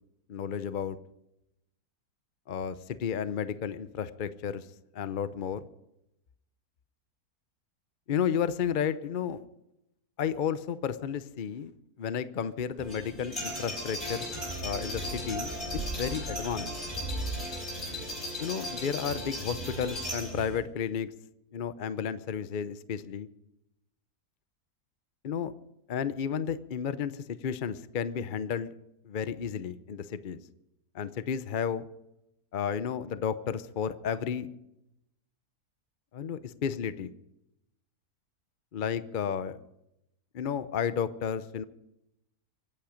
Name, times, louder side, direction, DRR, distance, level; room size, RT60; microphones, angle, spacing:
voice 1, 0.3-1.0 2.5-4.7 4.9-5.7 8.1-9.4 10.2-11.7 12.0-14.3 14.6-16.7 18.4-21.1 21.5-23.3 25.2-25.5 25.9-28.7 29.0-30.4 30.9-31.9 32.5-34.5 36.1-37.1 38.7-39.6 40.3-41.6, left 7 dB, 50° left, 13 dB, 0.6 m, -32 dB
sound 1, 12.8-20.6, equal, 15° left, 4.2 m, -36 dB
24.5 x 8.9 x 5.1 m, 0.86 s
omnidirectional pair, 1.6 m